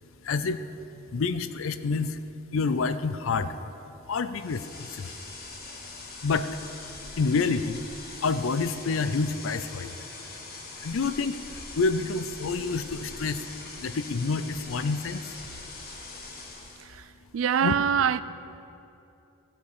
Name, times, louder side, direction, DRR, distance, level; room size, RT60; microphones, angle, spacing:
voice 1, 0.2-0.6 1.1-2.2 2.5-3.5 4.1-5.2 6.2-6.6 7.2-7.8 8.2-9.9 10.8-11.4 11.8-13.5 13.8-15.2 17.6-17.7, left 4 dB, 75° left, 0.5 m, -28 dB
sound 1, 4.3-16.9, left 3 dB, 50° left, 1.6 m, -42 dB
voice 2, 17.3-18.2, right 8 dB, 75° right, 0.3 m, -24 dB
14.0 x 5.2 x 8.1 m
head